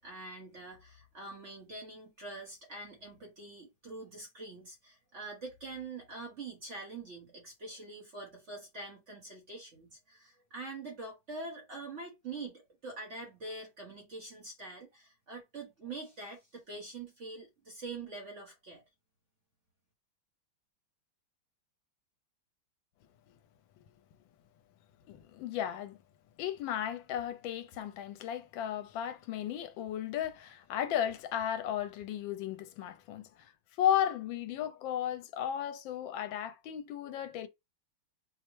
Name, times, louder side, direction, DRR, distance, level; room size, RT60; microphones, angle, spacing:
voice 1, 0.0-18.8, right 3 dB, 45° right, 1.0 m, -45 dB
voice 2, 25.1-26.0 26.4-33.5 33.8-37.5, left 10 dB, 80° left, 1.3 m, -34 dB
4.7 x 2.1 x 3.0 m
omnidirectional pair, 2.1 m